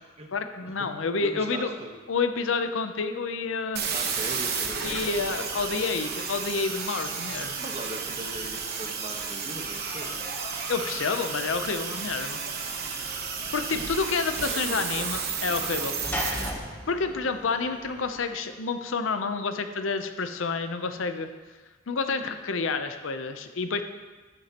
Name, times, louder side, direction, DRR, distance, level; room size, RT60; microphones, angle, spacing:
voice 1, 0.3-1.7 2.1-3.8 4.8-7.6 10.7-12.4 13.0-13.1 13.5-16.0 16.9-21.3 21.9-23.8, left 4 dB, 80° left, 8 dB, 0.6 m, -29 dB
voice 2, 1.2-1.9 3.9-5.8 7.6-10.3 14.5-15.2, right 1 dB, 35° right, 1 dB, 1.2 m, -40 dB
sound 1, 3.8-16.5, right 6 dB, 55° right, 1.0 m, -32 dB
sound 2, 4.5-18.1, equal, 75° right, 2.7 m, -46 dB
Sliding door / Slam, 12.4-18.2, left 1 dB, 10° left, 1.0 m, -39 dB
14.0 x 7.4 x 2.9 m, 1.3 s
head